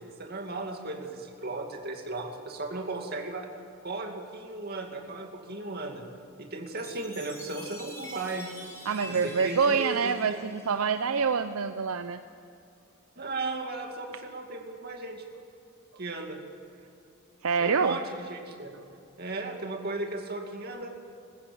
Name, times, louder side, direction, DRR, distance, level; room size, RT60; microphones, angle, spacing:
voice 1, 0.0-3.5 3.8-6.0 6.4-8.5 9.0-10.4 13.2-15.2 16.0-16.4 17.6-18.7 19.2-21.0, right 2 dB, 45° right, 3 dB, 2.4 m, -36 dB
Chime, 6.8-11.4, left 1 dB, 15° left, 3.2 m, -46 dB
voice 2, 8.9-12.2 17.4-18.0, right 5 dB, 75° right, 9 dB, 0.6 m, -26 dB
20.5 x 15.0 x 8.6 m, 2.5 s
head